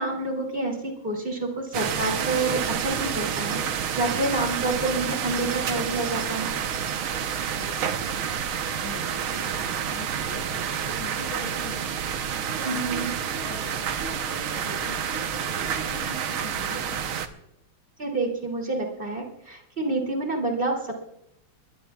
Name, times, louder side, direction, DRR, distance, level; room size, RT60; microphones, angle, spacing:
voice 1, 0.0-3.6 4.0-6.6 12.6-13.1 18.0-21.0, right 2 dB, 25° right, 0 dB, 2.8 m, -28 dB
sound 1, 1.7-17.3, right 8 dB, 90° right, 1.8 m, -29 dB
voice 2, 7.4-11.9 12.4-17.2, left 1 dB, 85° left, -6 dB, 7.3 m, -41 dB
22.5 x 20.0 x 2.4 m, 0.80 s
omnidirectional pair, 2.2 m